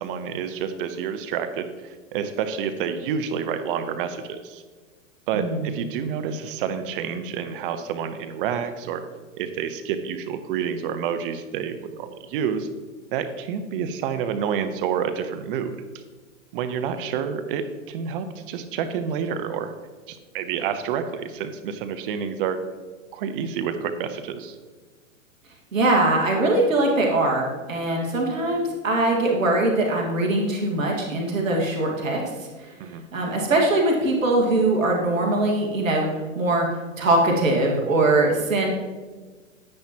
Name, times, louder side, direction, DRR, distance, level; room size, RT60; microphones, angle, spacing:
voice 1, 0.0-4.6 5.3-9.0 9.4-12.7 13.1-15.8 16.5-19.7 20.1-22.6 23.1-24.6 32.8-33.1, right 7 dB, 45° right, 9 dB, 0.8 m, -29 dB
voice 2, 5.3-5.7 25.7-32.5 33.1-36.1 36.4-36.7 37.0-38.7, right 2 dB, 80° right, -1 dB, 2.0 m, -22 dB
9.8 x 9.7 x 2.9 m, 1.4 s
hypercardioid pair, 110°, 39 cm